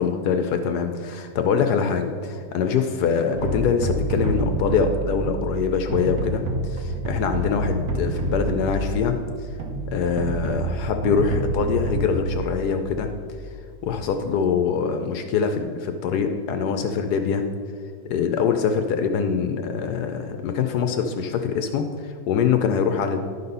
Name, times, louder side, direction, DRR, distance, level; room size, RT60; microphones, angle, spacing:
voice 1, 0.0-9.2 9.9-13.1 13.8-17.4 18.1-23.2, left 6 dB, 75° left, 7 dB, 0.9 m, -24 dB
sound 1, 3.4-13.5, right 2 dB, 55° right, 1.2 m, -28 dB
11.5 x 4.1 x 5.4 m, 2.1 s
omnidirectional pair, 2.1 m